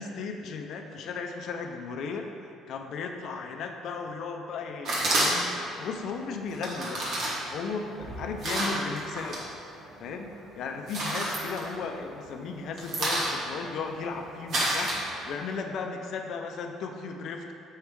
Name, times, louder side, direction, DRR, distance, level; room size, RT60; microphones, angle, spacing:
voice 1, 0.0-2.3 2.7-7.1 7.5-9.4 10.0-17.5, left 5 dB, 65° left, 4 dB, 0.5 m, -36 dB
sound 1, 4.8-5.7 6.5-9.4 9.8-10.3 10.7-12.2 12.5-15.5, right 1 dB, 65° right, 1.5 m, -30 dB
6.4 x 3.3 x 4.6 m, 2.4 s
supercardioid pair, 70°, 0 cm